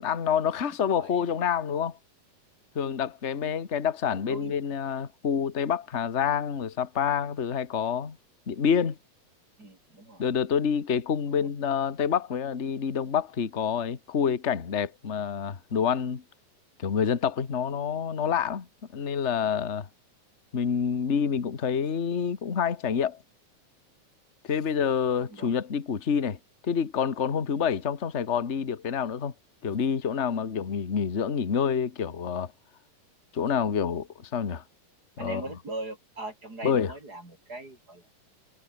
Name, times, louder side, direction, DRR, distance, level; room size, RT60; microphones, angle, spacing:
voice 1, 0.0-2.0 2.7-8.2 8.5-9.0 10.2-16.2 16.8-18.7 18.9-19.9 20.5-23.2 24.4-26.4 26.6-29.3 29.6-32.5 33.3-34.6 35.2-35.4 36.6-36.9, left 7 dB, 35° left, 1.1 m, -27 dB
voice 2, 4.1-4.6 9.6-10.2 25.3-25.5 35.2-38.2, right 2 dB, 25° right, 6.4 m, -40 dB
omnidirectional pair, 3.9 m